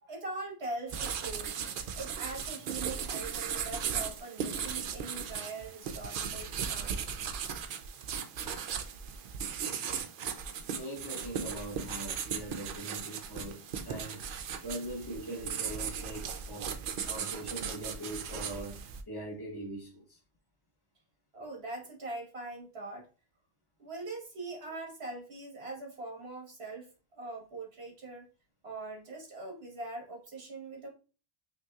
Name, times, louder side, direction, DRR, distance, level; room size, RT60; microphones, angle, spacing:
voice 1, 0.0-1.6 1.9-7.2 21.3-23.1 23.8-28.2 28.6-30.9, right 2 dB, 85° right, 1.7 m, -42 dB
sound 1, 0.9-19.0, right 7 dB, 65° right, 0.7 m, -37 dB
voice 2, 10.7-14.2 14.6-16.7 17.1-20.2, right 1 dB, 25° left, 1.2 m, -41 dB
5.3 x 2.9 x 2.3 m
omnidirectional pair, 1.0 m